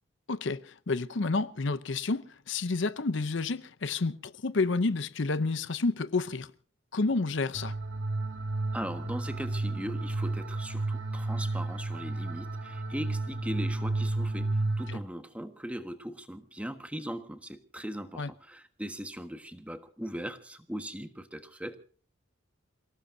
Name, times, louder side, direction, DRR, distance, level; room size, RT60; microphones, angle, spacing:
voice 1, 0.3-6.5 6.9-7.7 14.9-15.0 18.2-18.3, left 3 dB, 60° left, 0.7 m, -30 dB
sound 1, 7.5-15.0, right 2 dB, 65° right, 2.3 m, -32 dB
voice 2, 8.7-21.8, equal, 5° right, 1.4 m, -39 dB
29.0 x 18.0 x 2.7 m
head